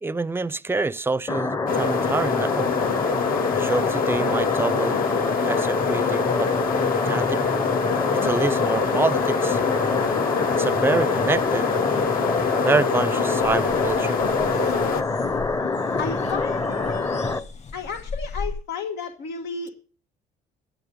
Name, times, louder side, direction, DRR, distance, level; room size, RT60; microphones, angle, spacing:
voice 1, 0.0-2.7 3.5-5.0 5.4-6.5 7.0-7.4 8.0-9.6 10.6-11.7 12.6-14.2, right 3 dB, 15° right, 0.5 m, -26 dB
sound 1, 1.3-17.4, left 3 dB, 20° left, 0.8 m, -26 dB
sound 2, 1.7-15.0, left 5 dB, 60° left, 1.2 m, -25 dB
sound 3, 13.4-18.5, left 4 dB, 45° left, 7.7 m, -38 dB
voice 2, 16.0-17.5 17.7-19.7, left 5 dB, 90° left, 1.5 m, -33 dB
15.5 x 9.7 x 5.2 m
cardioid pair, 110°, 17 cm